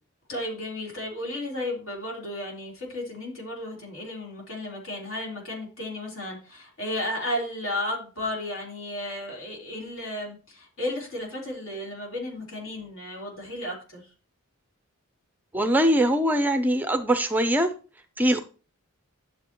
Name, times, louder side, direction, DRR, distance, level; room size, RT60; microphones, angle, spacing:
voice 1, 0.3-14.1, left 1 dB, 60° left, -2 dB, 3.6 m, -33 dB
voice 2, 15.5-17.7 18.2-18.4, right 1 dB, 10° right, 8 dB, 0.4 m, -22 dB
11.5 x 6.8 x 3.0 m, 0.37 s
head